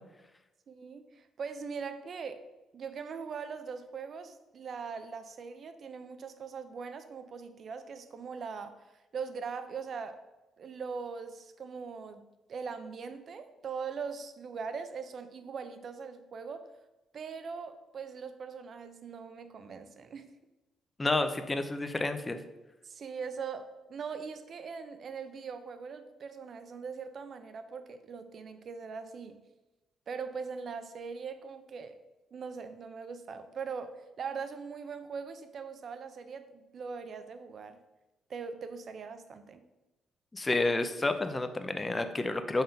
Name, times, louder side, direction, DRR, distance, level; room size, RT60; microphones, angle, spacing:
voice 1, 0.7-2.4 2.7-10.2 10.6-12.2 12.5-16.7 17.1-20.3 22.8-29.4 30.1-32.0 32.3-37.8 38.3-39.6, right 5 dB, 55° right, 9 dB, 0.6 m, -41 dB
voice 2, 21.0-22.4 40.3-42.6, left 2 dB, 20° left, 8 dB, 0.6 m, -30 dB
5.5 x 3.6 x 5.6 m, 1.0 s
cardioid pair, 90°, 0 cm